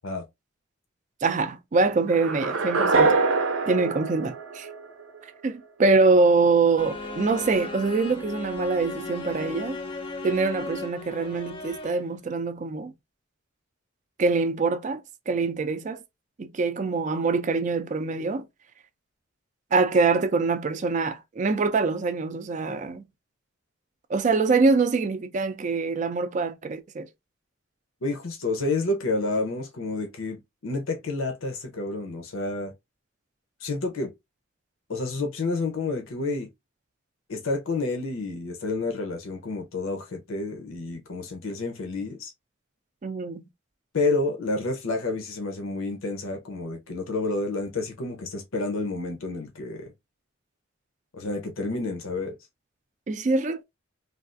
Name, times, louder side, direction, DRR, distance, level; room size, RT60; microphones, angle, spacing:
voice 1, 1.2-3.2 3.7-4.7 5.4-9.8 10.2-12.9 14.2-16.0 16.4-18.4 19.7-23.0 24.1-27.1 43.0-43.5 53.1-53.6, right 3 dB, 35° right, 0.3 m, -24 dB
sound 1, 2.1-5.2, right 4 dB, 85° right, 0.6 m, -24 dB
sound 2, 6.8-12.2, left 3 dB, 25° left, 0.5 m, -36 dB
voice 2, 28.0-32.7 33.6-34.1 34.9-36.5 37.3-42.3 43.9-49.9 51.2-52.3, left 3 dB, 90° left, 0.7 m, -29 dB
3.3 x 2.4 x 2.5 m
head